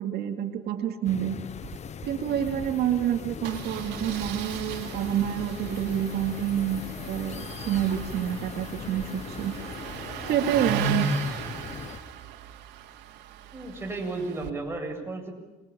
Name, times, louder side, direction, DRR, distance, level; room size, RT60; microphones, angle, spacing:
voice 1, 0.0-1.4 2.0-9.6 10.2-11.1, right 10 dB, 70° right, 4 dB, 2.4 m, -28 dB
sound 1, 1.0-12.0, left 7 dB, 40° left, 1.1 m, -40 dB
Engine starting, 1.5-1.8 2.0-2.1 2.4-2.5 3.4-14.5, right 5 dB, 90° right, 2.9 m, -36 dB
Thunder, 2.3-12.1, left 5 dB, 65° left, 5.2 m, -47 dB
voice 2, 13.5-15.3, right 3 dB, 15° right, 2 dB, 7.7 m, -33 dB
28.5 x 22.5 x 8.9 m, 1.1 s
cardioid pair, 110°, 17 cm